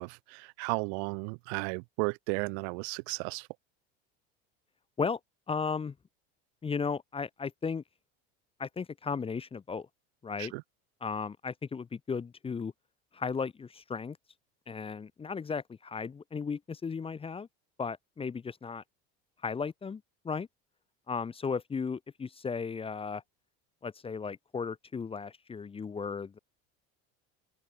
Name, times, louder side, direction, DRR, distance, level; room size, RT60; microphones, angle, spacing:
voice 1, 0.0-3.5 10.4-10.6, right 35 dB, 75° right, 1.5 m, -34 dB
voice 2, 5.5-5.9 6.6-7.8 8.6-9.9 10.2-10.5 11.0-12.7 13.1-14.2 14.7-17.5 17.8-18.8 19.4-20.5 21.1-23.2 23.8-26.4, left 5 dB, 15° left, 0.8 m, -35 dB
open air
supercardioid pair, 130°, 33 cm